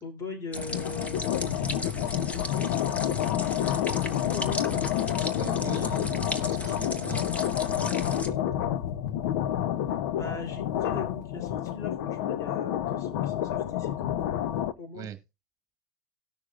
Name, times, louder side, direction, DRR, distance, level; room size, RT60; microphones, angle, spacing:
voice 1, 0.0-5.1 10.1-14.1 14.8-15.1, left 3 dB, 30° left, 3.1 m, -40 dB
sound 1, 0.5-14.7, left 11 dB, 75° left, 0.7 m, -29 dB
sound 2, 0.5-8.3, left 1 dB, 15° left, 1.2 m, -37 dB
voice 2, 5.4-8.4 14.9-15.2, right 8 dB, 35° right, 1.5 m, -41 dB
19.0 x 6.4 x 2.4 m
supercardioid pair, 115°, 10 cm